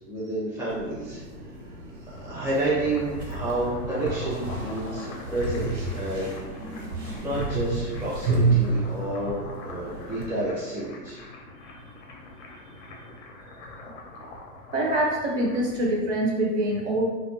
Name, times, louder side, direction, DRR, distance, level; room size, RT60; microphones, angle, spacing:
voice 1, 0.1-1.2 2.2-6.8 7.2-11.2, right 1 dB, 5° right, -10 dB, 0.5 m, -30 dB
sound 1, 0.7-10.3, right 3 dB, 85° right, 0.9 m, -30 dB
sound 2, 2.0-15.9, left 2 dB, 50° left, 0.5 m, -44 dB
voice 2, 14.7-17.0, right 1 dB, 50° right, -1 dB, 0.5 m, -25 dB
2.3 x 2.2 x 2.7 m, 1.3 s
hypercardioid pair, 145°, 48 cm